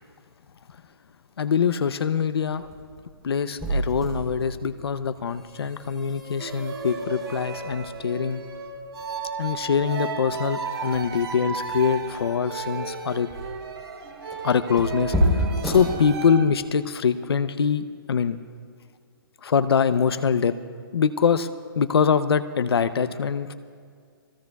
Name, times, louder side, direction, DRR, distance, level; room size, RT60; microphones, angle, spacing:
voice 1, 1.4-2.7 3.2-8.4 9.4-13.3 14.4-18.4 19.4-20.5 20.9-21.5 21.8-23.5, left 6 dB, 85° left, 12 dB, 0.7 m, -24 dB
sound 1, 2.6-16.6, equal, ahead, 3.4 m, -32 dB
sound 2, 6.4-16.5, right 5 dB, 85° right, 2.5 m, -34 dB
28.5 x 21.0 x 2.4 m, 2.2 s
hypercardioid pair, 170°, 13 cm